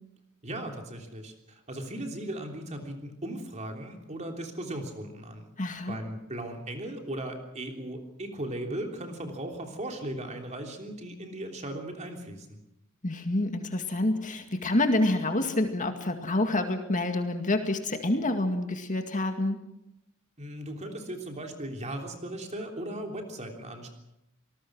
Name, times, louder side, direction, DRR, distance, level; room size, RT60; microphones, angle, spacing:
voice 1, 0.4-5.5 5.9-12.6 20.4-23.9, right 1 dB, 30° right, 3 dB, 3.3 m, -37 dB
voice 2, 5.6-6.0 13.0-19.6, left 2 dB, 35° left, 6 dB, 2.1 m, -27 dB
26.5 x 19.5 x 6.2 m, 0.87 s
head